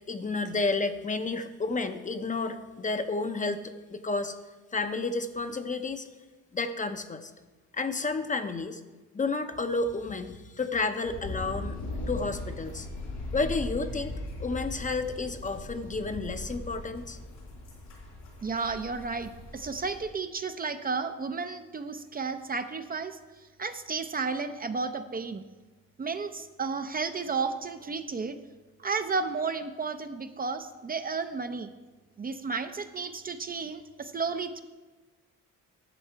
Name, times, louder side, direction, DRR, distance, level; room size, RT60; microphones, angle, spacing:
voice 1, 0.1-4.4 4.7-6.1 6.5-7.3 7.7-8.8 9.1-11.8 12.1-12.9 13.3-17.2, left 3 dB, 25° left, 8 dB, 0.7 m, -31 dB
sound 1, 11.0-20.0, left 1 dB, 75° left, 3.3 m, -39 dB
voice 2, 18.4-23.2 23.6-25.4 26.0-28.4 28.8-31.7 32.2-34.6, right 4 dB, 30° right, 8 dB, 0.6 m, -32 dB
11.0 x 7.1 x 4.5 m, 1.3 s
cardioid pair, 90°, 30 cm